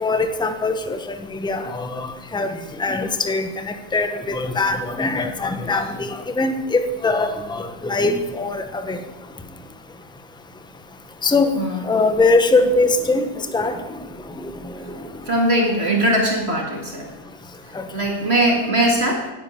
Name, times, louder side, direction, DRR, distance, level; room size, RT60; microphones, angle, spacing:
voice 1, 0.0-2.5 2.8-9.0 11.2-11.5 11.8-13.3 13.5-13.8 17.7-17.8, left 3 dB, 5° left, 8 dB, 0.6 m, -21 dB
voice 2, 15.3-17.1 17.9-19.3, right 1 dB, 45° right, 0 dB, 2.2 m, -20 dB
9.8 x 9.5 x 8.8 m, 1.1 s
omnidirectional pair, 1.6 m